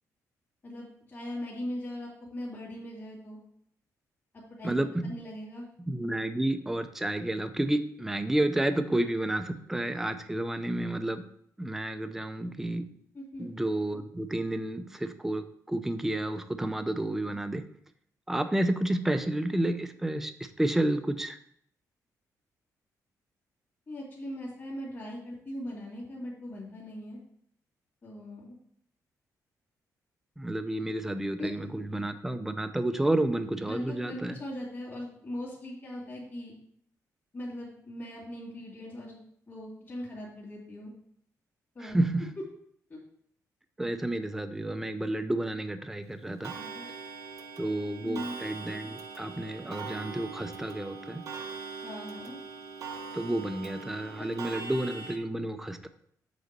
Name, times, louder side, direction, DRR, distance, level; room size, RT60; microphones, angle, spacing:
voice 1, 0.6-3.4 4.6-5.6 13.1-13.5 23.9-27.2 28.0-28.5 31.4-31.5 33.6-36.5 37.3-39.2 39.5-40.9 41.7-42.0 42.9-43.0 46.5-46.9 48.0-48.4 51.8-52.4 54.2-54.3, left 1 dB, 30° left, -7 dB, 2.5 m, -40 dB
voice 2, 4.6-5.1 5.9-11.2 11.6-12.9 13.4-17.6 18.3-21.4 30.4-34.3 41.8-42.3 43.8-46.5 47.6-51.2 53.1-55.9, right 1 dB, 5° right, 8 dB, 0.5 m, -30 dB
Clock, 46.4-55.2, right 5 dB, 60° right, 0.8 m, -42 dB
7.9 x 4.0 x 6.6 m, 0.66 s
wide cardioid pair, 170°, 6 cm